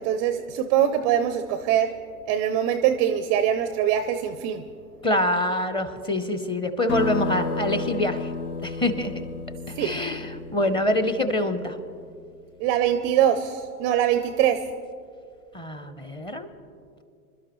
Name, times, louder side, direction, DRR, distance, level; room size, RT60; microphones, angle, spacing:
voice 1, 0.0-1.9 2.3-4.6 9.8-10.0 12.6-14.6, right 10 dB, 25° right, 10 dB, 0.4 m, -23 dB
voice 2, 5.0-8.3 8.6-9.3 9.7-11.8 15.5-16.5, left 1 dB, 10° left, 9 dB, 0.7 m, -25 dB
sound 1, 6.9-12.0, left 4 dB, 75° left, 1.2 m, -32 dB
26.5 x 12.0 x 3.0 m, 2.4 s
hypercardioid pair, 110°, 45 cm